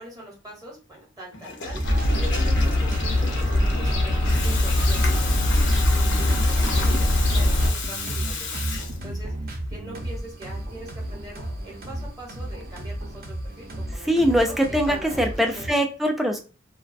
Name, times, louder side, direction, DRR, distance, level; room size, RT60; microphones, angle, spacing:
voice 1, 0.0-15.7, right 1 dB, 20° right, -3 dB, 0.8 m, -42 dB
Water tap faucet / Toilet flush, 1.3-9.4, left 4 dB, 70° left, 0.6 m, -33 dB
sound 1, 1.6-15.7, right 1 dB, 50° right, 0.6 m, -33 dB
Fowl / Gull seagull, 1.8-7.7, left 1 dB, 90° left, 0.9 m, -22 dB
voice 2, 14.0-16.4, equal, ahead, 3 dB, 0.3 m, -22 dB
2.3 x 2.2 x 2.4 m, 0.36 s
head